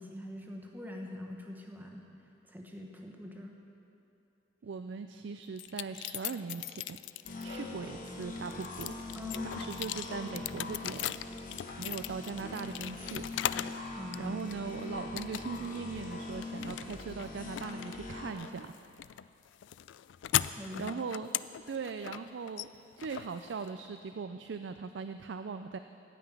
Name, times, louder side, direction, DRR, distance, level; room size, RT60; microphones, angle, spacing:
voice 1, 0.0-2.0 2.5-3.5 9.1-9.5 14.0-14.4 20.5-20.9, left 1 dB, 10° right, 1 dB, 1.2 m, -43 dB
voice 2, 4.6-7.0 7.4-9.0 9.4-11.1 11.8-13.3 14.2-18.7 20.7-21.3 21.7-22.7 23.0-25.8, right 5 dB, 70° right, 8 dB, 0.4 m, -40 dB
sound 1, 5.6-7.6 8.1-13.8 14.1-14.7 15.2-15.8 16.0-24.0, left 12 dB, 75° left, 0.3 m, -38 dB
sound 2, 7.2-18.3, left 2 dB, 45° left, 1.1 m, -42 dB
15.0 x 5.9 x 8.9 m, 2.7 s
head